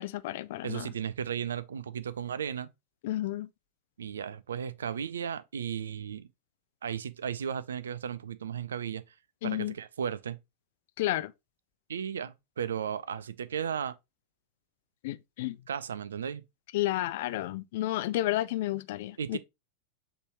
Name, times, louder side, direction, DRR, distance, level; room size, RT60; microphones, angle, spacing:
voice 1, 0.0-0.9 3.0-3.5 9.4-9.7 11.0-11.3 15.0-15.6 16.7-19.4, left 15 dB, 50° left, 0.3 m, -31 dB
voice 2, 0.6-2.7 4.0-6.3 6.8-9.0 9.4-10.4 11.9-13.9 15.7-16.4 19.2-19.4, right 8 dB, 65° right, 0.3 m, -35 dB
5.3 x 3.1 x 2.9 m
figure-of-eight pair, 90°, 0 cm